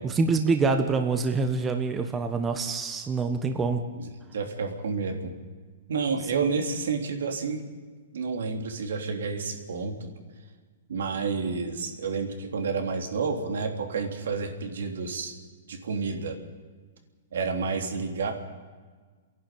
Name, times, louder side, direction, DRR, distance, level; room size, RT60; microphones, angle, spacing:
voice 1, 0.2-3.8, right 4 dB, 15° right, 6 dB, 1.5 m, -25 dB
voice 2, 3.9-5.3 5.9-7.6 8.1-10.1 10.9-15.3 15.7-16.4 17.3-18.3, right 4 dB, 80° right, 4 dB, 3.5 m, -30 dB
29.0 x 11.0 x 9.4 m, 1.5 s
hypercardioid pair, 145°, 0 cm